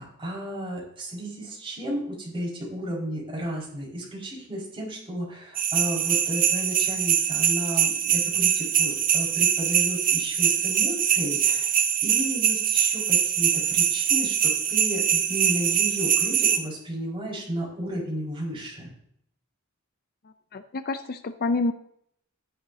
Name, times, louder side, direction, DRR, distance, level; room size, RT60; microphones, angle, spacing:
voice 1, 0.0-11.7 12.0-18.9, equal, 25° right, -4 dB, 5.2 m, -33 dB
sound 1, 5.5-16.6, right 9 dB, 40° right, 1.0 m, -23 dB
voice 2, 20.5-21.7, left 3 dB, 45° left, 10 dB, 0.5 m, -27 dB
13.0 x 10.5 x 2.8 m, 0.69 s
head